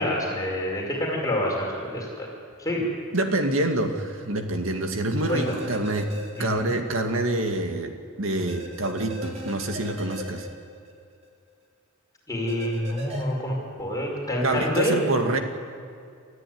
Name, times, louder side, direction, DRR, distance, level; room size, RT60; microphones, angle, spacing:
voice 1, 0.0-2.3 2.6-2.8 5.3-5.5 6.4-6.7 12.3-15.0, left 1 dB, 20° left, -2 dB, 5.1 m, -27 dB
voice 2, 3.1-6.1 6.4-7.9 8.2-10.5 14.4-15.4, right 2 dB, 75° right, 5 dB, 2.2 m, -26 dB
sound 1, 5.2-6.9 7.2-7.3 8.5-11.3 12.5-13.2, left 1 dB, 30° right, 3.4 m, -38 dB
29.0 x 14.5 x 9.5 m, 2.3 s
head